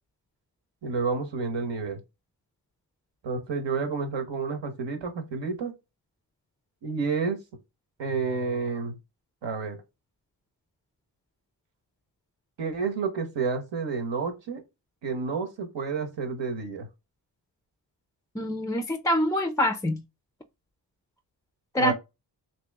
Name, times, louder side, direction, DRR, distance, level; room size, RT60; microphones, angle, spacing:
voice 1, 0.8-2.0 3.2-5.7 6.8-7.4 8.0-8.9 9.4-9.8 12.6-14.6 15.0-16.9 21.8-21.9, right 4 dB, 75° right, 1.1 m, -30 dB
voice 2, 18.3-20.0 21.7-21.9, equal, 10° left, 0.3 m, -25 dB
2.9 x 2.8 x 3.4 m
cardioid pair, 75°, 43 cm